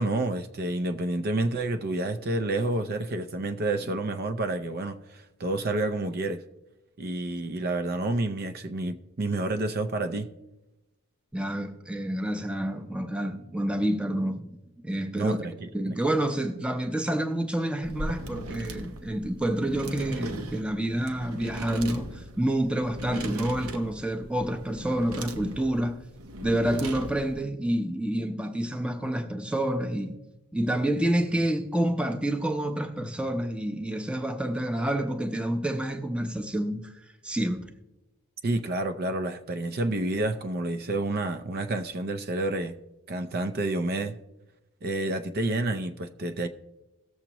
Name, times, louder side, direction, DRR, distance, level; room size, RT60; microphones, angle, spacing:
voice 1, 0.0-6.4 7.0-10.3 15.1-15.7 38.4-42.7 43.1-44.2 44.8-46.5, right 2 dB, 45° right, 0.5 m, -29 dB
voice 2, 11.3-14.5 14.8-15.4 15.7-26.0 26.4-30.2 30.5-36.9 37.2-37.7, right 1 dB, 5° right, 0.6 m, -28 dB
sound 1, 17.8-27.4, right 1 dB, 80° right, 0.9 m, -38 dB
18.0 x 7.2 x 3.0 m
head